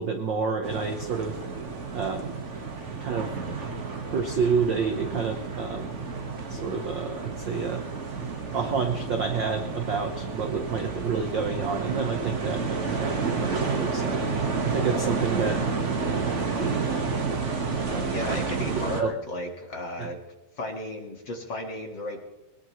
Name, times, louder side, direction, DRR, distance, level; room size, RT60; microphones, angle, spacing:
voice 1, 0.0-1.4 1.9-2.3 3.0-3.3 4.1-5.9 6.5-7.8 8.5-14.3 14.6-15.6 16.0-16.9 17.9-18.4 19.0-19.1 20.0-20.1, right 5 dB, 75° right, 5 dB, 1.0 m, -29 dB
sound 1, 0.6-19.0, right 4 dB, 35° right, 1.2 m, -30 dB
voice 2, 18.0-20.2 20.6-22.2, left 1 dB, 40° left, 3 dB, 2.2 m, -34 dB
21.5 x 20.0 x 3.2 m, 0.99 s
omnidirectional pair, 3.7 m